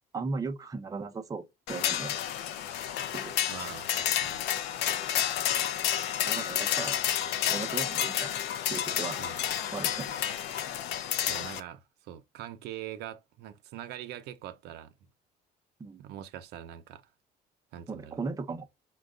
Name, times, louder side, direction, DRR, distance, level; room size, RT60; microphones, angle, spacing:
voice 1, 0.1-2.2 3.1-3.4 6.2-7.0 7.5-8.3 8.7-9.2 9.7-10.2 15.8-16.0 17.9-18.7, right 4 dB, 20° right, 0.5 m, -37 dB
sound 1, 1.7-11.6, left 11 dB, 90° left, 0.5 m, -30 dB
voice 2, 3.5-4.5 9.2-9.4 11.3-14.9 16.0-17.0 17.7-18.2, right 11 dB, 85° right, 0.6 m, -43 dB
4.5 x 2.2 x 3.7 m
cardioid pair, 110°, 17 cm